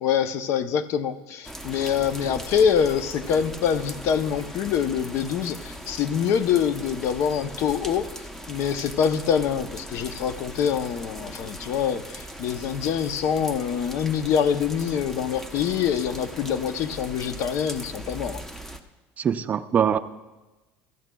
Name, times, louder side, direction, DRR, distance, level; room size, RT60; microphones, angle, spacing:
voice 1, 0.0-18.4, left 8 dB, 55° left, 11 dB, 0.6 m, -25 dB
sound 1, 1.4-18.8, equal, 5° left, 0.7 m, -39 dB
voice 2, 19.2-20.0, right 8 dB, 30° right, 11 dB, 0.4 m, -22 dB
18.0 x 15.0 x 2.3 m, 1.1 s
cardioid pair, 145°, 5 cm